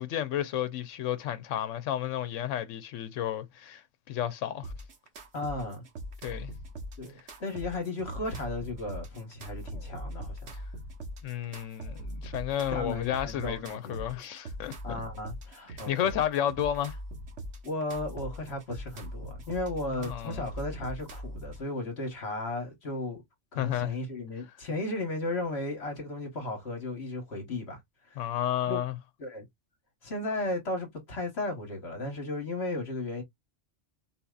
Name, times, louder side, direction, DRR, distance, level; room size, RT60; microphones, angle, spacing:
voice 1, 0.0-3.8 4.1-4.7 6.2-6.5 11.2-15.0 15.7-17.0 20.0-20.5 23.6-24.0 28.2-29.0, left 11 dB, 85° left, 1.0 m, -32 dB
sound 1, 4.6-21.6, equal, 70° right, 1.4 m, -41 dB
voice 2, 5.3-5.8 7.0-10.5 12.7-14.1 14.8-15.9 17.6-23.2 23.5-28.3 28.7-28.8 29.2-29.4 30.0-33.2, left 2 dB, 60° left, 1.4 m, -35 dB
4.3 x 2.8 x 2.3 m
omnidirectional pair, 1.3 m